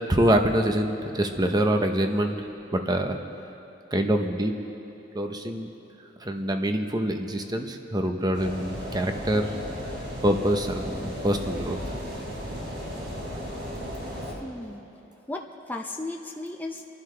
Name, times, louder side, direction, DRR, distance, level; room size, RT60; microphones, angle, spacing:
voice 1, 0.1-2.5 2.7-3.2 3.9-4.6 5.1-5.7 6.2-9.6 10.2-12.0, right 1 dB, 20° right, 5 dB, 0.9 m, -25 dB
sound 1, 8.3-14.3, equal, 65° right, 3.5 m, -35 dB
voice 2, 14.4-14.9 15.3-16.9, left 2 dB, 10° left, 2 dB, 0.6 m, -35 dB
30.0 x 11.5 x 3.4 m, 2.8 s
head